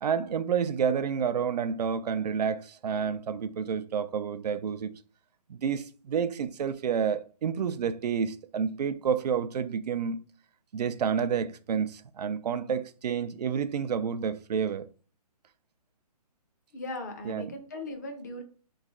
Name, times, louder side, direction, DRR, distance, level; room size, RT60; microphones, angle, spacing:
voice 1, 0.0-4.9 5.5-10.2 10.7-14.9 17.3-17.5, right 7 dB, 80° right, 0.4 m, -29 dB
voice 2, 16.7-18.4, left 2 dB, 25° left, 0.5 m, -38 dB
3.1 x 2.4 x 3.5 m
hypercardioid pair, 165°, 20 cm